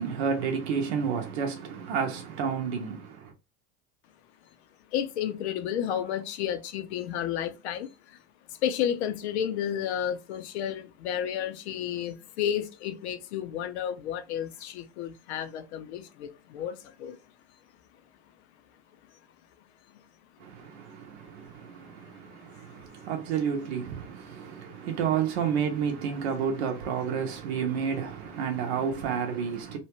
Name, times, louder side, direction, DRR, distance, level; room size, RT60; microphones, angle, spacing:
voice 1, 0.0-3.3 20.4-29.8, right 7 dB, 85° right, 0.7 m, -30 dB
voice 2, 4.9-8.2 8.6-17.2 19.9-20.0 22.0-22.1 22.7-22.8 24.7-24.8, left 9 dB, 85° left, 0.6 m, -32 dB
2.8 x 2.2 x 2.9 m
supercardioid pair, 105°, 32 cm